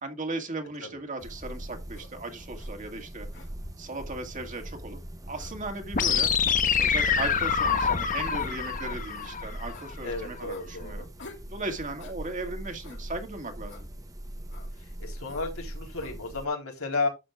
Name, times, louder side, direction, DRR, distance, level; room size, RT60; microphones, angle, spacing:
voice 1, 0.0-3.3 3.8-5.0 5.3-6.3 6.8-11.1 11.5-13.9, right 2 dB, 40° right, 2.1 m, -37 dB
sound 1, 1.2-16.5, right 1 dB, 15° right, 1.0 m, -42 dB
sound 2, 1.9-2.1 2.6-2.7 3.3-3.9 4.5-4.7 5.3-5.5 6.2-6.3 7.0-7.2 7.8-7.9 8.3-8.5 9.1-9.3 9.7-9.9 10.5-10.7 11.2-11.5 12.0-12.2 12.8-13.0 13.7-13.9 14.5-14.7 15.2-15.5 15.9-16.2, left 2 dB, 60° left, 2.7 m, -48 dB
sound 3, 5.9-9.9, left 6 dB, 40° left, 1.1 m, -26 dB
voice 2, 10.0-11.1 14.8-17.1, left 3 dB, 85° left, 3.7 m, -33 dB
11.0 x 7.6 x 2.4 m
head